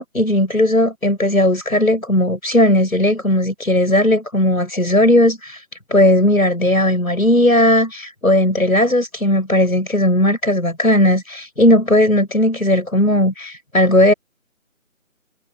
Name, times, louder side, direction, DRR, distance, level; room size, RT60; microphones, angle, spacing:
voice 1, 0.0-5.6 5.9-14.1, left 1 dB, 90° left, 7.5 m, -16 dB
figure-of-eight pair, 160°, 41 cm